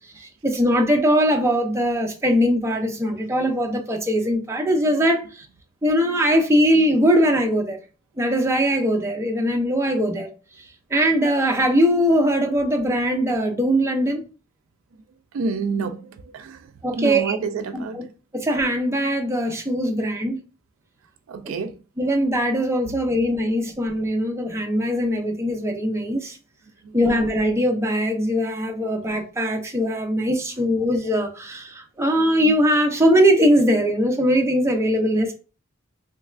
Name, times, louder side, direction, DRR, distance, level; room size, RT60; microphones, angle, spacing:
voice 1, 0.2-5.5 5.8-7.8 8.2-10.3 10.9-14.2 16.8-17.4 17.7-18.0 18.3-20.4 22.0-26.4 26.9-35.3, equal, 15° right, 0.5 m, -21 dB
voice 2, 15.3-16.7 16.9-18.0 21.3-21.7 26.8-27.0, right 4 dB, 70° right, 0.3 m, -28 dB
3.3 x 3.1 x 2.4 m
head